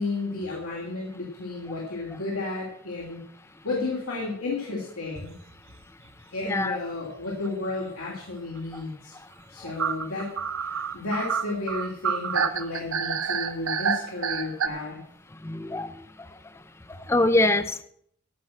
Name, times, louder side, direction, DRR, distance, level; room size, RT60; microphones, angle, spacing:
voice 1, 0.0-3.2 3.6-5.4 6.3-9.1 9.5-15.0, left 3 dB, 85° left, -4 dB, 2.9 m, -32 dB
sound 1, 5.5-5.8 6.0-6.1 6.4-6.5 7.4-7.7 9.8-14.7, right 6 dB, 70° right, 0.9 m, -28 dB
voice 2, 15.4-15.9 17.1-17.8, left 2 dB, 10° left, 11 dB, 0.5 m, -23 dB
14.5 x 6.0 x 7.7 m, 0.69 s
head